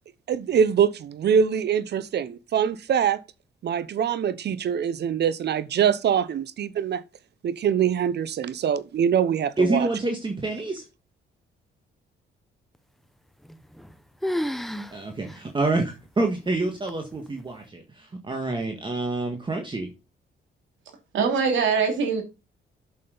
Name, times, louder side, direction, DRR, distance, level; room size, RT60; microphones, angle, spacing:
voice 1, 0.3-3.2 3.6-7.0 7.4-9.9, right 8 dB, 55° right, 0.8 m, -23 dB
voice 2, 9.6-10.8 14.9-19.9, right 2 dB, 25° right, 1.7 m, -27 dB
sound 1, 13.4-13.9 14.2-14.9 15.3-15.4 16.1-16.2 16.9-17.3, equal, ahead, 0.7 m, -30 dB
voice 3, 21.1-22.2, right 5 dB, 75° right, 3.1 m, -22 dB
7.8 x 7.5 x 3.9 m
cardioid pair, 90°, 20 cm